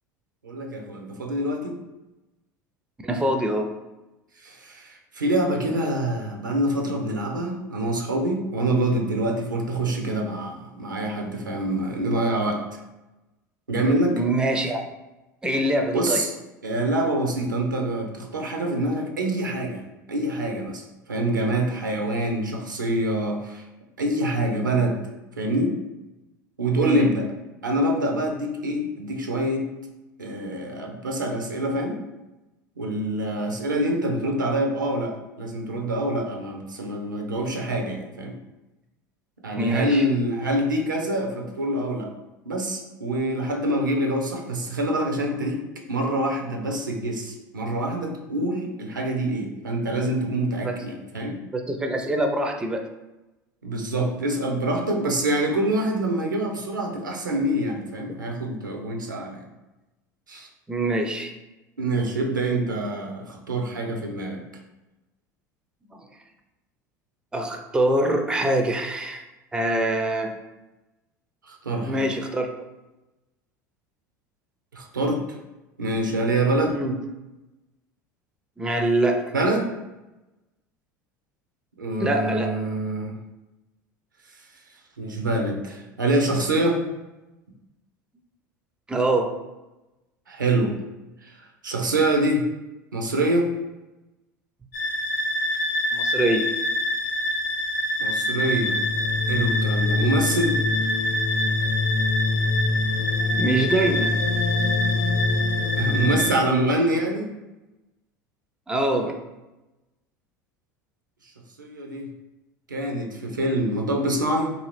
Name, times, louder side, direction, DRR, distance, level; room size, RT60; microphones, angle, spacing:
voice 1, 0.4-1.8 4.4-12.8 13.7-14.2 15.9-16.3 16.6-20.8 21.1-23.6 24.0-25.0 25.4-25.8 26.6-27.2 27.6-29.7 30.2-32.0 32.8-38.4 39.4-42.1 42.5-45.6 45.9-51.4 53.6-59.4 60.3-60.5 61.8-64.4 71.5-72.1 74.7-75.2 75.8-76.8 79.3-79.7 81.8-83.1 85.0-86.8 90.3-90.7 91.2-91.3 91.6-92.5 92.9-93.5 98.0-98.8 99.3-100.6 105.8-107.3 111.6-112.1 112.7-114.5, right 1 dB, 90° right, 2 dB, 0.4 m, -25 dB
voice 2, 3.0-3.7 14.1-14.8 15.4-16.2 26.8-27.1 39.5-40.1 50.6-50.7 51.5-52.8 60.7-61.3 66.0-66.1 67.3-69.2 69.5-70.3 71.9-72.5 76.7-76.9 78.6-79.2 82.0-82.6 88.9-89.3 95.9-96.5 103.4-104.1 108.7-109.2, right 1 dB, 10° right, 4 dB, 0.4 m, -24 dB
sound 1, 94.7-106.3, left 2 dB, 70° left, 0.5 m, -24 dB
2.6 x 2.4 x 3.3 m, 1.0 s
figure-of-eight pair, 75°, 10 cm